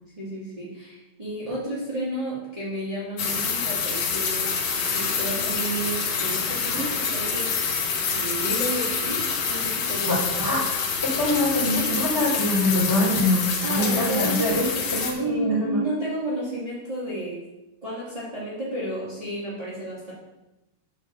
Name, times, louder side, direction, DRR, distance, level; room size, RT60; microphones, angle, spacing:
voice 1, 0.1-7.7 8.1-10.6 13.6-14.8 15.1-17.5 17.8-20.1, right 1 dB, 25° right, -9 dB, 0.7 m, -32 dB
sound 1, 3.2-15.1, left 5 dB, 65° left, 1.8 m, -26 dB
voice 2, 10.0-10.6 11.0-14.7 14.9-15.9, left 1 dB, 5° left, -6 dB, 2.6 m, -24 dB
9.3 x 4.6 x 6.5 m, 0.98 s
omnidirectional pair, 4.8 m